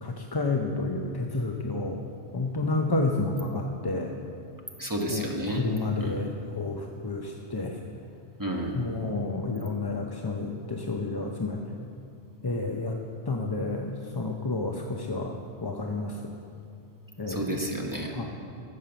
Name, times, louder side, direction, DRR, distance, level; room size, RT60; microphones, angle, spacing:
voice 1, 0.0-2.0 2.3-4.1 5.1-7.8 8.7-11.6 12.4-13.0 13.3-16.2 17.2-17.6 18.1-18.2, left 3 dB, 30° left, 2 dB, 0.5 m, -30 dB
voice 2, 4.8-5.6 6.0-6.2 8.4-8.7 17.3-18.1, right 1 dB, 20° right, 0 dB, 1.2 m, -31 dB
13.5 x 7.4 x 6.8 m, 2.5 s
omnidirectional pair, 1.1 m